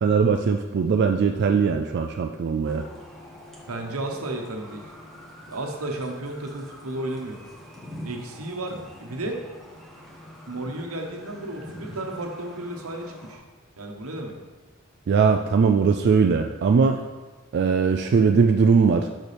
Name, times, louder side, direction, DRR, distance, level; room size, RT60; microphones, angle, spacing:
voice 1, 0.0-2.8 15.1-17.0 17.5-19.1, right 5 dB, 50° right, 5 dB, 0.3 m, -20 dB
sound 1, 2.6-13.4, equal, ahead, 1.2 m, -44 dB
voice 2, 3.7-4.8 5.5-7.4 8.0-9.4 10.5-13.4 13.8-14.3 16.8-17.0, right 1 dB, 85° right, 3 dB, 1.0 m, -33 dB
6.6 x 6.0 x 3.4 m, 1.3 s
head